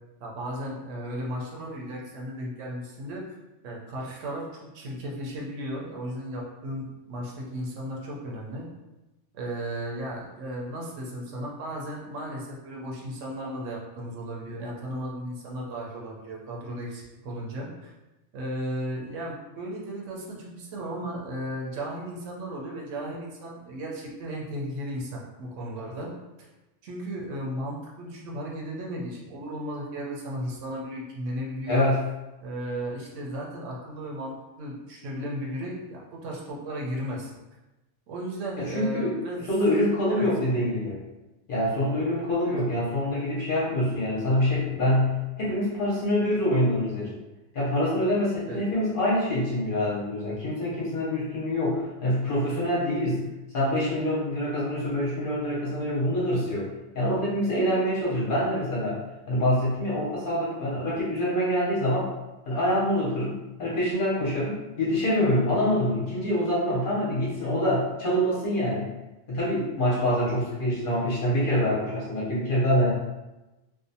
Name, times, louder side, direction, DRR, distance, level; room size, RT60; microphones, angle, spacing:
voice 1, 0.2-3.2 3.6-8.7 9.3-17.9 18.3-26.1 26.4-26.5 26.8-31.9 32.4-37.3 38.1-39.4 40.1-40.3 40.5-40.6 42.2-42.6 48.5-48.6, equal, 75° right, -2 dB, 0.9 m, -35 dB
voice 2, 31.7-32.0 38.6-39.2 39.5-41.0 41.5-47.2 47.5-53.3 53.5-56.7 56.9-59.0 59.3-62.1 62.4-68.9 69.3-72.9, left 1 dB, 50° left, -7 dB, 0.7 m, -25 dB
2.5 x 2.1 x 2.6 m, 1.0 s
omnidirectional pair, 1.3 m